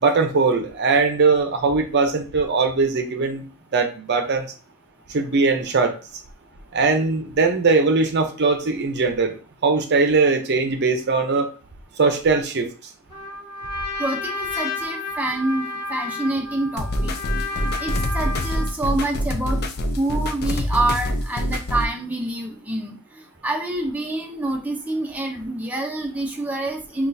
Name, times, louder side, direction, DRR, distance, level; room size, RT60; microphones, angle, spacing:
voice 1, 0.0-3.4 3.7-4.5 5.1-6.0 6.7-11.5 12.0-12.7, right 4 dB, 50° right, 6 dB, 0.6 m, -20 dB
Trumpet, 13.1-18.8, left 3 dB, 20° left, 1.4 m, -31 dB
voice 2, 14.0-17.1 17.4-19.6 20.0-23.0 23.4-27.1, right 2 dB, 5° right, 1 dB, 0.6 m, -27 dB
sound 1, 16.8-21.8, equal, 50° left, 0.5 m, -25 dB
5.9 x 2.4 x 2.6 m, 0.36 s
head